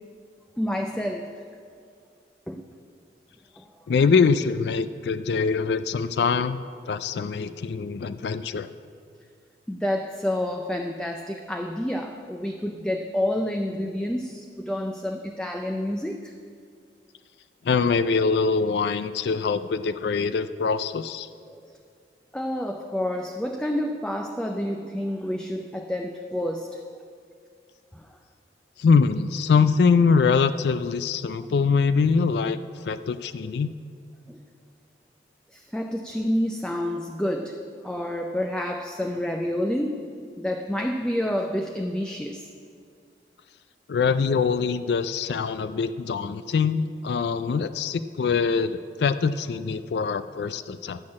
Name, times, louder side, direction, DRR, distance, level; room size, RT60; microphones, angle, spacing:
voice 1, 0.6-1.3 2.5-2.7 3.6-3.7 9.7-16.3 21.5-21.7 22.3-26.8 27.9-28.1 31.4-31.5 34.3-34.4 35.5-40.1 40.4-42.5, left 1 dB, 5° left, 3 dB, 0.4 m, -29 dB
voice 2, 3.9-8.7 17.6-21.3 28.8-32.6 32.8-33.7 43.9-51.0, left 5 dB, 70° left, 13 dB, 0.4 m, -23 dB
11.5 x 6.4 x 8.5 m, 2.3 s
head